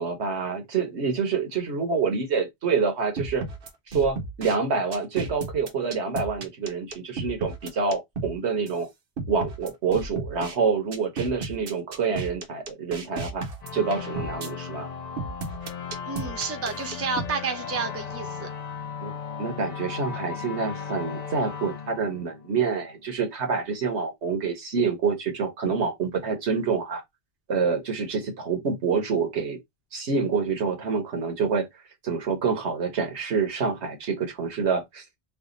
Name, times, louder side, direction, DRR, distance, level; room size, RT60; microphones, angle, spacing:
voice 1, 0.0-3.4 3.9-8.9 9.3-13.4 13.7-14.9 19.0-27.0 27.5-29.6 29.9-31.7 32.0-35.0, right 5 dB, 70° right, 1.3 m, -27 dB
sound 1, 3.2-4.6 4.9-8.4 8.7-8.8 9.2-10.6 10.9-14.5 15.2-17.3, right 3 dB, 55° right, 1.0 m, -34 dB
sound 2, 13.6-22.9, left 6 dB, 45° left, 0.7 m, -36 dB
voice 2, 16.1-18.5, right 4 dB, 15° right, 0.7 m, -30 dB
3.3 x 2.3 x 3.8 m
omnidirectional pair, 1.2 m